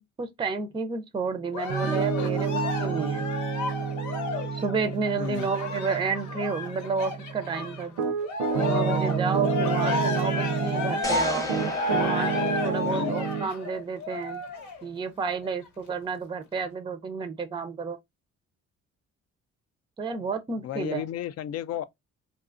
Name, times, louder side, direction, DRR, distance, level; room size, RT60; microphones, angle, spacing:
voice 1, 0.0-3.3 4.5-8.0 8.6-11.5 11.9-14.4 14.8-18.0 20.0-21.0, right 5 dB, 15° right, 0.4 m, -31 dB
Cheering, 1.5-7.8 8.2-14.8 15.4-15.5, left 3 dB, 80° left, 0.8 m, -32 dB
Piano, 1.7-11.1 11.5-13.5, right 6 dB, 75° right, 0.6 m, -29 dB
voice 2, 5.2-5.5 12.8-13.1 20.6-21.8, left 10 dB, 55° left, 0.4 m, -33 dB
sound 1, 11.0-13.3, left 2 dB, 10° left, 0.8 m, -35 dB
2.7 x 2.3 x 2.4 m
cardioid pair, 90°, 30 cm